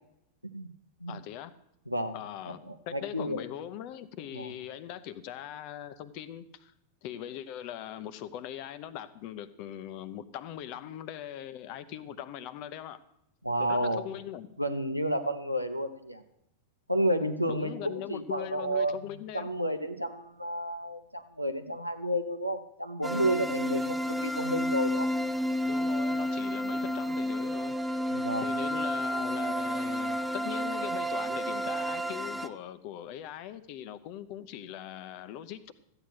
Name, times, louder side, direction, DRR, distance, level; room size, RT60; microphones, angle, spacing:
voice 1, 1.1-1.6 2.1-6.7 7.0-13.0 13.6-14.5 17.5-19.5 23.7-23.8 25.6-27.7 28.4-35.7, left 11 dB, 45° left, 14 dB, 0.7 m, -41 dB
voice 2, 1.9-2.2 2.7-3.4 4.3-4.5 13.4-14.1 14.6-16.2 16.9-19.0 19.3-25.1 28.1-28.5, equal, 90° right, 8 dB, 0.9 m, -31 dB
sound 1, 23.0-32.5, equal, 5° right, 0.6 m, -31 dB
14.0 x 8.8 x 6.1 m, 0.77 s
figure-of-eight pair, 90°, 0 cm